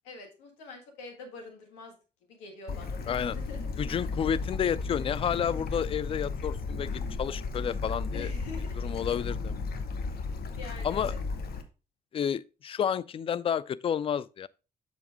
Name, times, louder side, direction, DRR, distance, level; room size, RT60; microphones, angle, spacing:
voice 1, 0.0-1.9 2.3-3.7 8.1-8.9 10.0-11.2, left 3 dB, 70° left, 1.7 m, -45 dB
Bird / Stream, 2.7-11.6, left 4 dB, 50° left, 1.0 m, -34 dB
voice 2, 3.8-8.3 8.8-9.5 10.8-11.1 12.1-14.5, left 8 dB, 25° left, 0.3 m, -30 dB
7.0 x 5.1 x 3.5 m
figure-of-eight pair, 45°, 21 cm